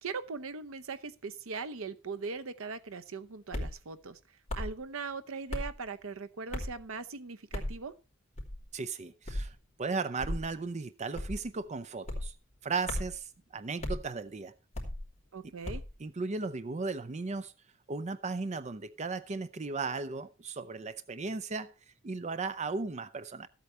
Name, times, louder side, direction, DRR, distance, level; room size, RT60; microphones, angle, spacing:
voice 1, 0.0-4.2 4.5-7.9 15.3-15.8, right 4 dB, 75° right, 0.8 m, -40 dB
sound 1, 3.5-3.8 4.5-4.8 5.5-5.7 6.5-6.8 7.5-7.8 8.4-8.7 9.3-9.5 10.2-10.5 11.1-11.5 12.1-12.3 12.9-13.2 13.8-14.0 14.7-15.0 15.6-15.9, left 1 dB, 35° left, 2.8 m, -36 dB
voice 2, 8.7-12.3 12.6-14.5 16.0-17.5 17.9-21.7 22.0-23.5, right 4 dB, 35° right, 0.5 m, -36 dB
13.5 x 8.2 x 4.3 m
head